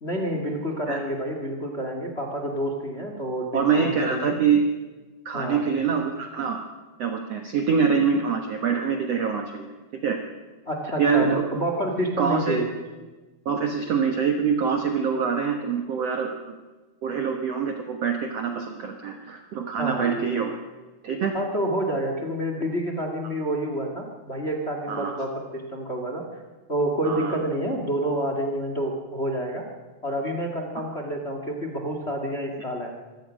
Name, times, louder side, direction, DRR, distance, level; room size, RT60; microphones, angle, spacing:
voice 1, 0.0-4.4 5.3-5.6 10.7-12.7 19.8-20.1 21.3-26.2 26.7-29.6 30.0-32.9, right 1 dB, 25° left, 2 dB, 1.7 m, -28 dB
voice 2, 3.5-4.6 5.3-6.6 7.0-9.7 10.0-10.2 11.0-11.6 12.2-12.6 13.5-16.5 17.0-20.6 21.0-21.3 24.9-25.3 27.0-27.4, right 6 dB, 55° right, 4 dB, 2.0 m, -25 dB
25.5 x 17.0 x 6.4 m, 1.3 s
omnidirectional pair, 4.3 m